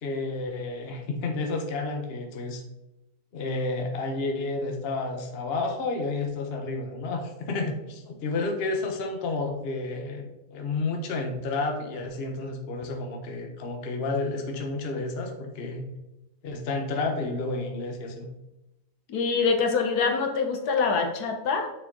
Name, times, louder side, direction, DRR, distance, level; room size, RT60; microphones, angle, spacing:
voice 1, 0.0-2.6 3.3-16.0 16.4-18.3, left 3 dB, 45° left, 3 dB, 1.0 m, -31 dB
voice 2, 19.1-21.7, left 5 dB, 75° left, 5 dB, 1.3 m, -25 dB
6.4 x 4.6 x 3.7 m, 0.98 s
omnidirectional pair, 1.7 m